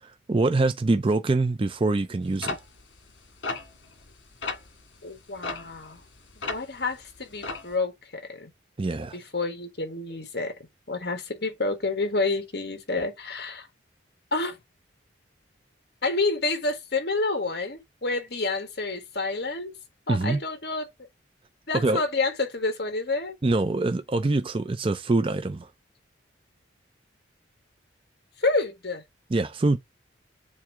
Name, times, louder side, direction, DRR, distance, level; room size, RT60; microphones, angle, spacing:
voice 1, 0.0-2.6 8.8-9.2 20.1-20.4 21.7-22.0 23.4-25.7 29.3-29.8, right 2 dB, 30° right, 0.4 m, -24 dB
sound 1, 2.4-4.1 4.4-4.7 5.4-6.8 7.1-7.7, left 3 dB, 80° left, 1.7 m, -33 dB
voice 2, 5.0-6.0 6.4-8.5 9.1-10.5 10.9-13.7 14.3-14.6 16.0-19.7 20.1-20.9 21.7-23.4 28.4-29.0, left 3 dB, 55° left, 1.7 m, -29 dB
7.3 x 2.8 x 4.8 m
head